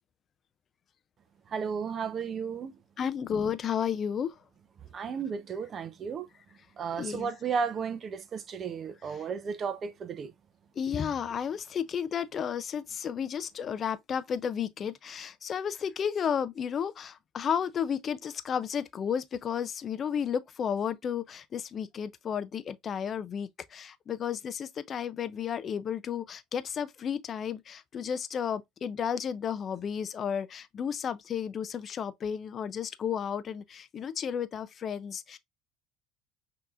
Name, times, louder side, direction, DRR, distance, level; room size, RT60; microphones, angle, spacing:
voice 1, 1.5-2.8 4.9-6.3 6.8-10.3, right 6 dB, 35° right, 0.8 m, -34 dB
voice 2, 3.0-4.3 7.0-7.3 10.8-35.4, left 8 dB, 35° left, 0.5 m, -33 dB
5.9 x 2.9 x 2.5 m
supercardioid pair, 110°, 0 cm